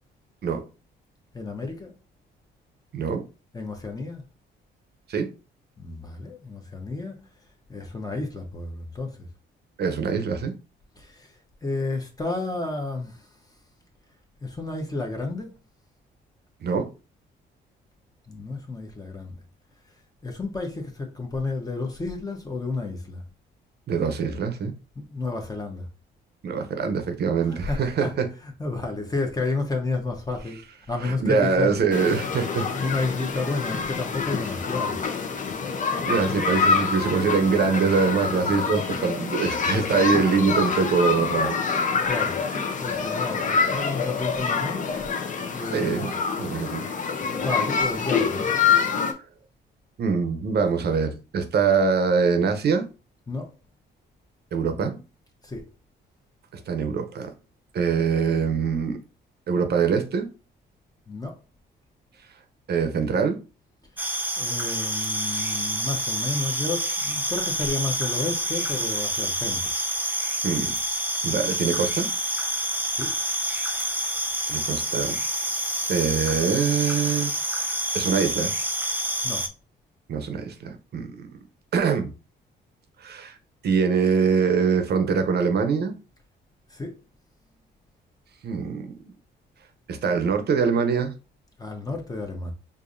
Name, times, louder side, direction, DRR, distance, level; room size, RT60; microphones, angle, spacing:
voice 1, 1.3-1.9 3.5-4.2 5.8-7.2 7.7-9.3 11.0-11.3 11.6-13.2 14.4-15.5 18.3-19.3 20.2-23.2 25.0-25.9 27.4-28.1 28.4-30.6 30.9-31.7 32.7-35.0 42.0-42.4 42.8-44.9 45.5-46.1 47.2-48.6 53.3-53.5 55.4-55.6 61.1-61.3 64.4-69.6 72.9-73.1 79.2-79.4 86.7-87.0 91.6-92.5, left 3 dB, 20° left, 1.0 m, -31 dB
voice 2, 2.9-3.2 5.1-5.3 9.8-10.5 16.6-16.9 23.9-24.7 26.4-28.3 31.0-32.7 35.8-41.6 45.7-46.1 46.4-46.8 50.0-52.8 54.5-55.0 56.5-57.3 57.7-59.0 59.5-60.3 62.7-63.4 70.4-70.7 71.2-72.1 74.5-75.2 75.9-77.7 77.9-78.5 80.1-81.3 81.7-82.1 83.0-83.3 83.6-85.9 88.4-89.1 89.9-91.1, right 5 dB, 55° right, 0.8 m, -24 dB
sound 1, 31.9-49.1, left 5 dB, 40° left, 0.7 m, -26 dB
sound 2, 64.0-79.5, right 1 dB, 10° right, 0.6 m, -28 dB
4.8 x 2.6 x 2.6 m
cardioid pair, 90°, 20 cm